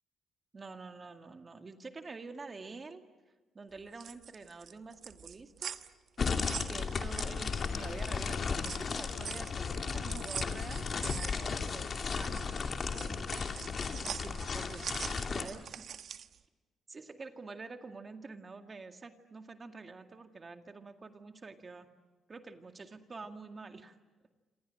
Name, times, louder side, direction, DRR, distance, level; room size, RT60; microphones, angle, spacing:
voice 1, 0.5-3.0 3.5-5.8 6.7-12.5 13.8-15.9 16.9-21.9 22.3-24.0, right 4 dB, 30° right, 6 dB, 2.1 m, -47 dB
sound 1, 3.8-7.9 8.3-16.4, right 8 dB, 60° right, 1.1 m, -44 dB
sound 2, 6.2-15.4, left 5 dB, 45° left, 2.6 m, -35 dB
sound 3, 7.4-13.5, left 6 dB, 90° left, 2.9 m, -50 dB
27.5 x 27.0 x 7.7 m, 1.3 s
cardioid pair, 90°, 0 cm